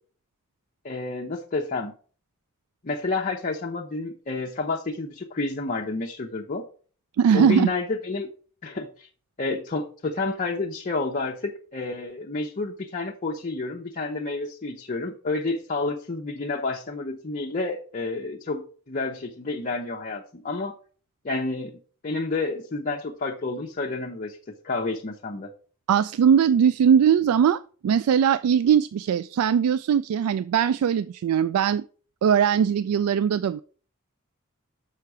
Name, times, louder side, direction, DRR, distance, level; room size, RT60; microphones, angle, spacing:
voice 1, 0.8-1.9 2.8-6.7 7.3-8.3 8.6-9.1 9.4-20.8 21.2-21.7 22.0-24.4 24.6-25.5, left 3 dB, 40° left, -1 dB, 0.7 m, -30 dB
voice 2, 7.2-7.7 25.9-31.8 32.2-33.6, right 8 dB, 90° right, 15 dB, 0.3 m, -20 dB
6.6 x 5.7 x 4.7 m, 0.42 s
head